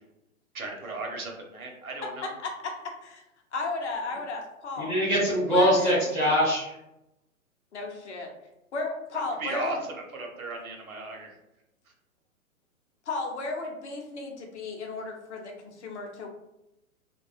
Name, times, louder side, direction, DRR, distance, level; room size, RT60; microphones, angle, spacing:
voice 1, 0.5-2.3 9.1-11.4, right 2 dB, 80° right, 2 dB, 0.8 m, -36 dB
voice 2, 3.5-4.9 5.5-6.2 7.7-8.3 8.7-9.8 13.1-16.3, left 3 dB, 55° left, 2 dB, 0.6 m, -34 dB
voice 3, 4.8-6.8, equal, 5° left, -11 dB, 0.4 m, -23 dB
2.5 x 2.3 x 2.3 m, 0.88 s
figure-of-eight pair, 115°, 42 cm